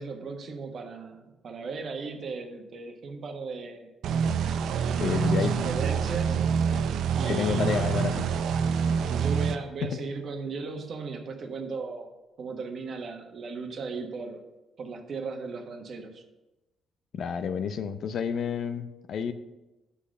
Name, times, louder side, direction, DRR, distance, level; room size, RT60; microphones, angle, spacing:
voice 1, 0.0-3.9 4.6-6.5 7.1-7.9 9.1-12.1 12.4-14.4 14.8-16.2, right 4 dB, 55° right, 4 dB, 1.2 m, -37 dB
sound 1, 4.0-9.6, right 6 dB, 75° right, 0.5 m, -26 dB
voice 2, 5.0-5.5 7.3-8.2 9.8-10.0 17.1-19.3, left 6 dB, 65° left, 10 dB, 0.6 m, -29 dB
6.4 x 5.6 x 6.3 m, 1.0 s
cardioid pair, 90°, 0 cm